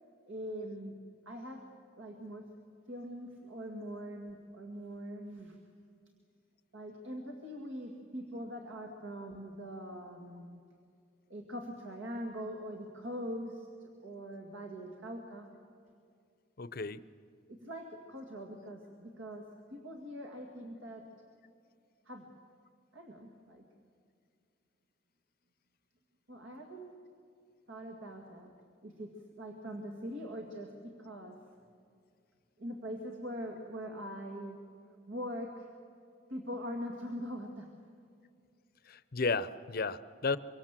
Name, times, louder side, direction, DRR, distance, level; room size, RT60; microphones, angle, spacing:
voice 1, 0.3-1.0 1.3-1.6 2.0-2.5 2.9-5.6 6.7-10.6 11.3-15.5 17.5-21.1 22.1-22.3 22.9-23.6 26.3-27.0 27.7-28.5 28.8-31.4 32.6-34.6 35.1-35.7 36.3-37.7, equal, 70° right, 2 dB, 2.1 m, -42 dB
voice 2, 16.6-17.0 38.9-40.4, left 4 dB, 45° left, 15 dB, 0.7 m, -33 dB
24.5 x 24.5 x 7.5 m, 2.3 s
head